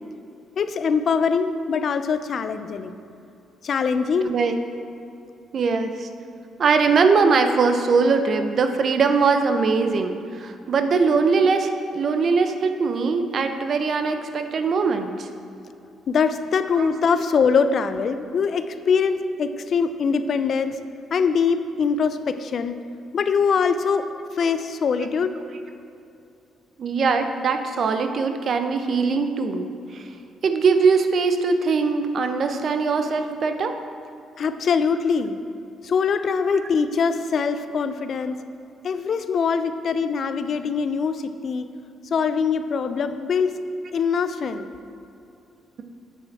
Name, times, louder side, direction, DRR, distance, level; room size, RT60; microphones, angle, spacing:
voice 1, 0.6-2.9 3.6-4.3 16.1-20.8 21.1-22.8 23.1-24.0 24.4-25.3 34.4-35.4 35.8-38.4 38.8-41.6 42.1-43.5 43.9-44.7, left 5 dB, 50° left, 11 dB, 0.4 m, -23 dB
voice 2, 4.2-4.6 5.5-6.1 6.6-15.3 16.8-16.9 26.8-29.7 29.9-30.1 30.4-33.8 36.5-36.7, right 4 dB, 50° right, 7 dB, 0.6 m, -21 dB
8.4 x 6.7 x 4.2 m, 2.7 s
cardioid pair, 100°, 0 cm